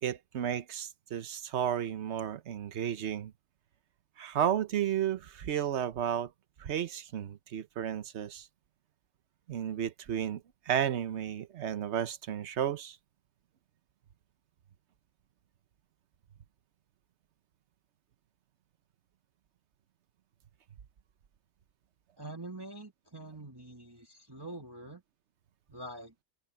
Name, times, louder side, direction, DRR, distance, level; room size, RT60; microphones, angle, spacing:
voice 1, 0.0-3.3 4.2-6.3 6.6-8.5 9.5-13.0, right 9 dB, 80° right, 1.1 m, -33 dB
voice 2, 22.2-25.0 25.7-26.1, right 2 dB, 20° right, 2.2 m, -45 dB
omnidirectional pair, 1.1 m